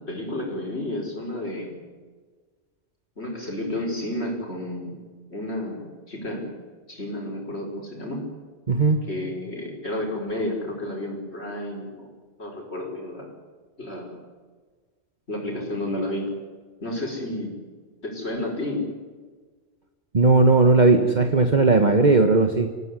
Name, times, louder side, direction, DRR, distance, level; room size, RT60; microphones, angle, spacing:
voice 1, 0.0-1.8 3.2-5.0 5.3-6.5 6.9-8.2 9.1-12.1 12.4-13.3 13.8-14.2 15.3-16.3 16.8-17.5 18.0-18.8, left 1 dB, 75° left, -1 dB, 5.5 m, -31 dB
voice 2, 8.7-9.0 20.1-22.7, right 3 dB, 40° right, 5 dB, 1.5 m, -17 dB
26.5 x 17.0 x 9.9 m, 1.4 s
omnidirectional pair, 1.1 m